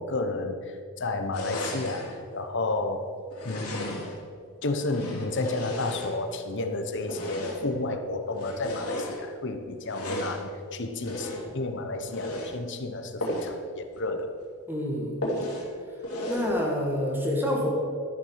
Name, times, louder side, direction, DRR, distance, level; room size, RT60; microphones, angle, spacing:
voice 1, 0.0-3.1 3.4-4.1 4.6-14.4, left 2 dB, 55° left, 7 dB, 1.0 m, -32 dB
sound 1, 1.3-2.1 3.3-4.2 4.8-6.5 7.0-7.8 8.3-9.2 9.8-10.4 11.0-11.6 12.0-12.5 13.2-13.6 13.9-14.0 14.4-14.5 15.2-15.7 16.0-16.5, equal, 80° left, 2.9 m, -34 dB
voice 2, 14.7-15.2 16.3-17.7, left 1 dB, 10° right, -1 dB, 2.0 m, -27 dB
12.5 x 7.2 x 6.5 m, 2.3 s
head